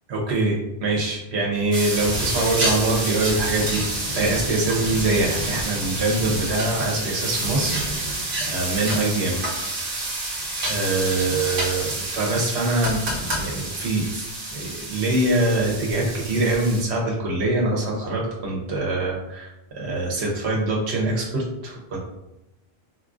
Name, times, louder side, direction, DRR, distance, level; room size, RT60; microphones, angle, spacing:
voice 1, 0.1-8.1 8.5-9.4 10.7-22.0, right 2 dB, 85° right, -2 dB, 1.0 m, -24 dB
sound 1, 1.7-16.8, right 2 dB, 60° right, 1.0 m, -29 dB
Thunder, 1.9-10.8 11.2-11.4 11.8-12.0 12.6-13.1, right 1 dB, 55° left, 0.6 m, -35 dB
4.1 x 2.3 x 2.4 m, 0.89 s
omnidirectional pair, 1.1 m